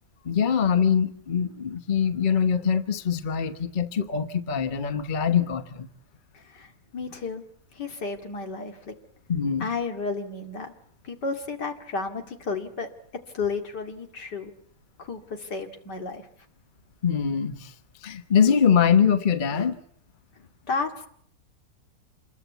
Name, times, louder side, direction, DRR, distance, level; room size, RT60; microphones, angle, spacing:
voice 1, 0.2-5.9 9.3-9.7 17.0-17.7 18.0-19.8, left 7 dB, 30° left, 10 dB, 1.1 m, -23 dB
voice 2, 6.3-7.4 7.7-8.9 9.6-10.7 11.0-12.9 13.3-14.5 15.0-16.3 20.7-21.1, left 4 dB, 70° left, 5 dB, 2.9 m, -32 dB
27.5 x 21.5 x 8.2 m, 0.68 s
omnidirectional pair, 1.9 m